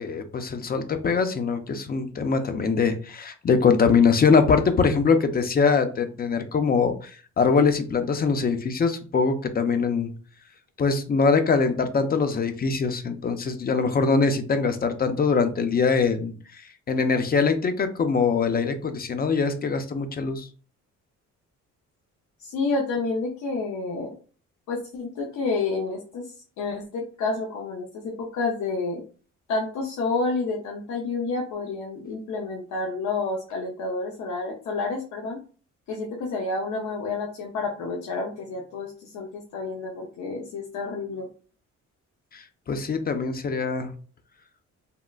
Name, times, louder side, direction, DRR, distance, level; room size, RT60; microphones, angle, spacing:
voice 1, 0.0-10.1 10.8-16.6 16.9-20.5 42.3-43.9, left 5 dB, 30° left, 9 dB, 0.5 m, -23 dB
voice 2, 22.4-24.1 24.7-29.0 29.5-35.4 35.9-41.3, left 3 dB, 70° left, -1 dB, 0.7 m, -29 dB
3.6 x 2.1 x 2.4 m, 0.39 s
cardioid pair, 90°, 30 cm